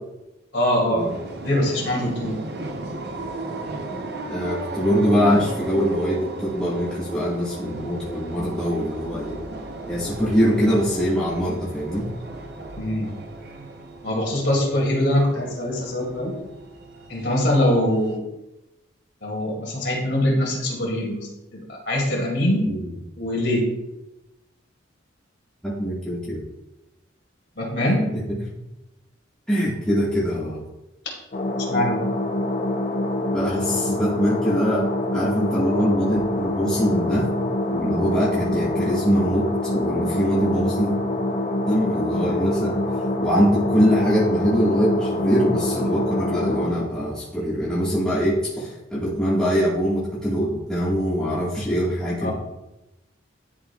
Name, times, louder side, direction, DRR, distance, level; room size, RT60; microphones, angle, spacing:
voice 1, 0.5-1.1 1.4-2.4 12.8-13.1 14.0-16.3 17.1-18.2 19.2-22.7 23.2-23.7 27.6-28.0 31.7-32.0 52.2-52.3, left 1 dB, 60° left, -2 dB, 2.3 m, -23 dB
sound 1, 1.0-18.2, right 2 dB, 55° right, 0.7 m, -35 dB
voice 2, 4.3-9.4 9.9-12.1 22.7-22.9 25.6-26.4 28.3-28.4 29.5-30.6 33.3-34.8 35.1-37.3 37.7-40.9 41.7-42.7 43.2-52.3, equal, 5° left, -10 dB, 1.5 m, -23 dB
sound 2, 31.3-46.7, left 1 dB, 35° left, 0.6 m, -25 dB
11.0 x 5.0 x 2.3 m, 0.96 s
head